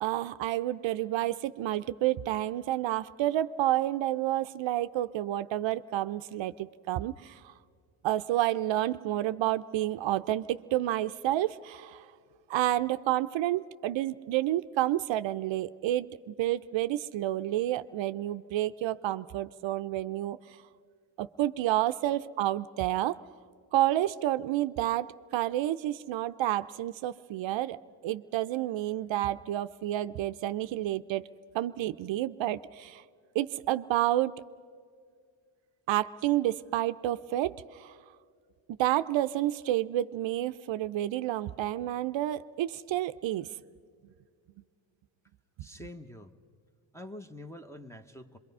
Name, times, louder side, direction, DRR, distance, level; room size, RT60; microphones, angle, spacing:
voice 1, 0.0-7.5 8.0-12.1 12.5-20.4 21.2-23.2 23.7-31.2 31.5-33.0 33.3-34.4 35.9-37.9 38.8-43.5, right 14 dB, 70° right, 13 dB, 0.6 m, -30 dB
voice 2, 45.6-46.3 46.9-48.4, left 1 dB, 5° left, 2 dB, 1.0 m, -45 dB
24.5 x 22.5 x 5.4 m, 2.1 s
cardioid pair, 80°, 47 cm